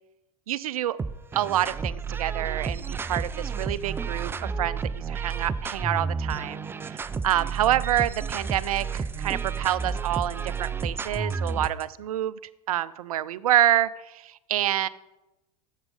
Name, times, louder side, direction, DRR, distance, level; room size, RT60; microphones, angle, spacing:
voice 1, 0.5-1.0 1.3-12.4 12.7-14.9, right 12 dB, 65° right, 18 dB, 0.5 m, -27 dB
sound 1, 1.0-11.8, right 5 dB, 10° right, 0.4 m, -31 dB
14.5 x 7.3 x 3.8 m, 0.96 s
figure-of-eight pair, 80°, 20 cm